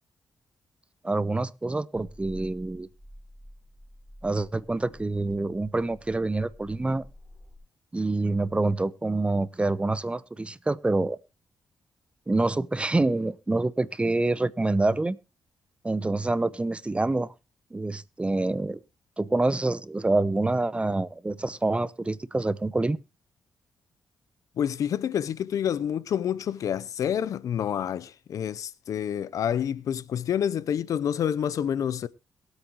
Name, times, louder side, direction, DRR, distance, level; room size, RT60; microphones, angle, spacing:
voice 1, 1.0-2.9 4.2-7.1 7.9-11.2 12.3-15.2 15.8-17.3 17.7-18.8 19.2-23.0, right 2 dB, 20° right, 0.8 m, -26 dB
sound 1, 1.9-7.6, equal, 15° left, 3.7 m, -49 dB
voice 2, 24.6-32.1, left 9 dB, 70° left, 0.6 m, -28 dB
22.0 x 8.3 x 3.0 m
cardioid pair, 65°, 6 cm